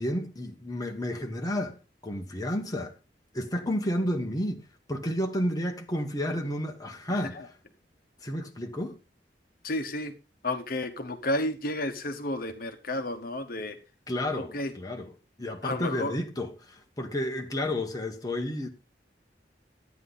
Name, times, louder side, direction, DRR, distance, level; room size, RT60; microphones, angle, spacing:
voice 1, 0.0-1.8 2.0-2.9 3.3-7.4 8.2-9.0 14.1-15.1 15.4-18.7, left 1 dB, 20° left, 1.4 m, -31 dB
voice 2, 7.1-7.5 9.6-10.1 10.4-13.8 14.4-14.7 15.6-16.2, left 1 dB, 50° left, 1.2 m, -32 dB
12.0 x 9.5 x 4.1 m
head